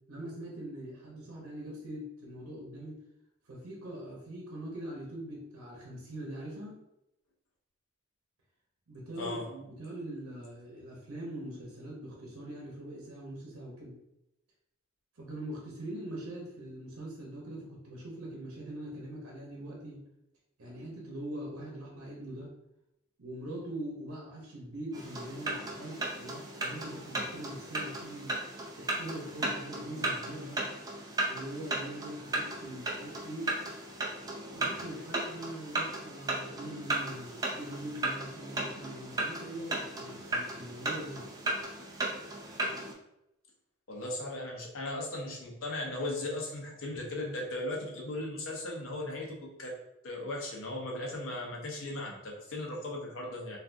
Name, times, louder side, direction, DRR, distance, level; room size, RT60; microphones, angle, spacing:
voice 1, 0.1-3.0 3.5-6.8 8.9-13.9 15.2-20.0 20.6-22.5 23.2-28.3 28.8-30.6 31.2-33.5 34.5-41.3, right 1 dB, 85° right, -3 dB, 0.8 m, -42 dB
sound 1, 24.9-42.9, right 2 dB, 15° right, 0.4 m, -36 dB
voice 2, 43.9-49.7 50.0-53.6, left 1 dB, 65° left, -1 dB, 0.7 m, -37 dB
3.3 x 2.4 x 2.5 m, 0.85 s
head